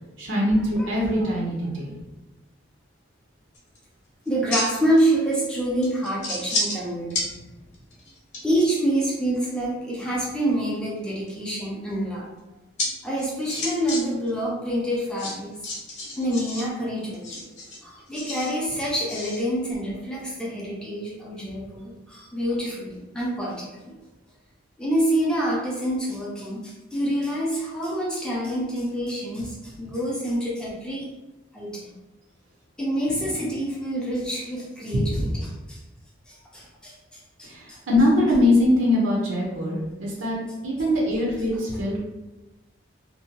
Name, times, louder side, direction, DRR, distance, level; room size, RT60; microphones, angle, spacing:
voice 1, 0.2-2.0 34.9-35.3 37.4-40.4 40.6-42.0, left 1 dB, 80° right, -3 dB, 0.6 m, -22 dB
sound 1, 3.5-3.8 4.3-5.0 5.3-5.4 5.8-6.8 7.1-7.3 7.7-8.6 10.7-11.3 12.8-12.9 13.2-14.0 14.3-14.4 15.2-16.6 17.1-18.5 19.1-19.4, left 2 dB, 35° left, 0.7 m, -30 dB
voice 2, 4.3-7.2 8.4-12.3 13.0-15.6 16.2-17.5 17.8-24.0 24.8-31.1 31.5-31.9 32.8-35.8 36.3-37.0 37.4-37.8, right 1 dB, 5° left, -5 dB, 0.4 m, -27 dB
2.6 x 2.1 x 2.8 m, 1.1 s
head